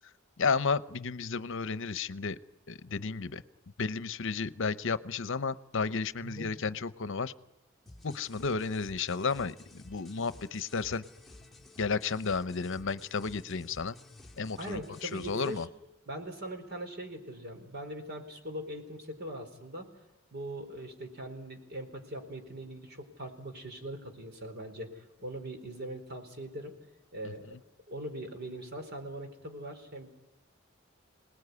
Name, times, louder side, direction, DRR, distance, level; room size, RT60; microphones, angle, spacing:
voice 1, 0.4-2.4 2.7-3.4 3.8-7.3 8.0-11.0 11.8-13.9 14.4-15.7, left 4 dB, 65° left, 15 dB, 0.8 m, -32 dB
voice 2, 6.2-6.6 14.6-15.6 16.1-19.9 20.3-26.7 27.1-27.6 27.9-30.1, right 1 dB, 50° right, 6 dB, 4.4 m, -41 dB
sound 1, 7.9-15.7, left 2 dB, ahead, 2.2 m, -53 dB
26.5 x 19.5 x 9.7 m, 1.0 s
head